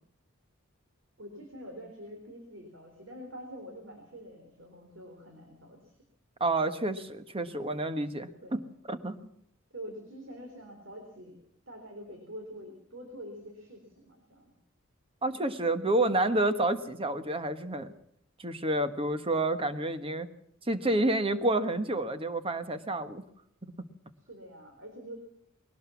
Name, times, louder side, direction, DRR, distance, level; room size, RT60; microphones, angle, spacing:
voice 1, 1.2-6.0 8.4-8.6 9.7-11.4 11.7-14.5 15.3-15.4 15.9-16.1 24.3-25.2, equal, 60° right, 3 dB, 4.0 m, -46 dB
voice 2, 6.4-8.6 8.9-9.1 15.2-17.9 18.4-20.3 20.6-23.2 23.6-23.7, right 2 dB, 25° right, 10 dB, 1.3 m, -29 dB
21.0 x 18.5 x 7.2 m, 0.70 s
head